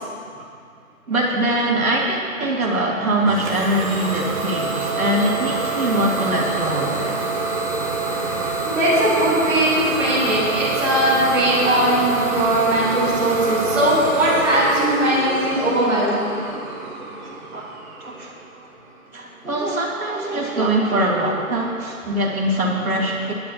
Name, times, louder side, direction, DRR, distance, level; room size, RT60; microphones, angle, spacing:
voice 1, 1.1-7.3 16.5-16.6 17.2-17.7 18.0-18.4 19.1-23.3, right 1 dB, 75° right, -3 dB, 2.9 m, -23 dB
Idling / Domestic sounds home sounds, 3.3-18.8, right 3 dB, 35° right, 1.9 m, -26 dB
voice 2, 8.2-16.2, right 1 dB, 5° right, -15 dB, 2.8 m, -20 dB
22.5 x 11.0 x 2.9 m, 2.2 s
figure-of-eight pair, 160°, 42 cm